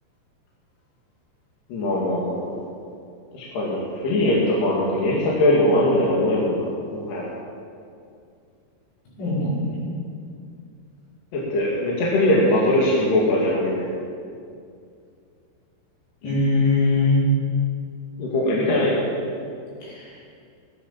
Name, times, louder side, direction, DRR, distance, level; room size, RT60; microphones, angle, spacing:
voice 1, 1.7-2.5 3.3-7.3 11.3-13.9 18.2-18.9, left 1 dB, 75° left, -6 dB, 4.3 m, -21 dB
voice 2, 9.2-9.8 16.2-17.3 19.8-20.2, left 3 dB, 90° left, -8 dB, 7.6 m, -22 dB
16.5 x 11.5 x 7.2 m, 2.3 s
omnidirectional pair, 4.9 m